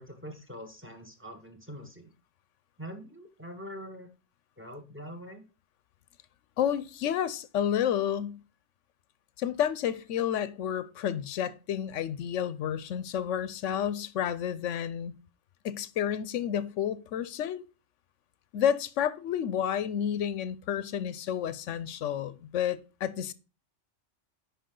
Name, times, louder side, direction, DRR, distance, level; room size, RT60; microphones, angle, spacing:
voice 1, 0.0-2.1 2.8-4.1 4.6-5.4, equal, 10° right, 1.4 m, -44 dB
voice 2, 6.6-8.4 9.4-15.1 15.6-17.6 18.5-23.3, left 9 dB, 90° left, 1.0 m, -30 dB
10.0 x 4.9 x 3.8 m
omnidirectional pair, 1.2 m